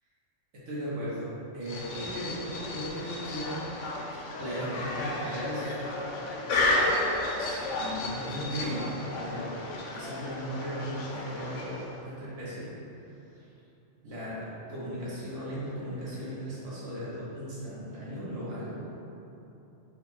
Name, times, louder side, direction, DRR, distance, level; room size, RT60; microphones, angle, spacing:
voice 1, 0.5-3.5 4.4-5.8 6.1-6.8 7.4-9.5 9.9-12.7 13.0-13.5 14.0-18.8, equal, 85° right, -10 dB, 1.5 m, -37 dB
sound 1, 1.6-12.0, left 2 dB, 80° left, 0.9 m, -32 dB
4.7 x 2.2 x 4.2 m, 3.0 s
omnidirectional pair, 1.2 m